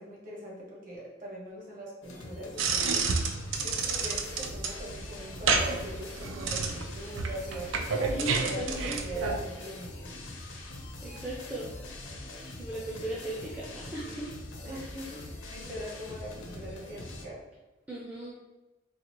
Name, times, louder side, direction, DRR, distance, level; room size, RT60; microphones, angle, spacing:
voice 1, 0.0-3.1 3.6-10.1 14.6-17.4, right 1 dB, 45° right, -5 dB, 1.1 m, -42 dB
sound 1, 2.0-17.2, left 1 dB, 75° left, 0.6 m, -43 dB
sound 2, 2.6-9.4, right 4 dB, 80° right, 0.4 m, -30 dB
voice 2, 8.1-9.3 10.4-10.6 11.0-11.7 12.6-14.3 17.9-18.3, right 1 dB, 5° right, -6 dB, 0.4 m, -37 dB
4.0 x 2.4 x 3.0 m, 1.1 s
head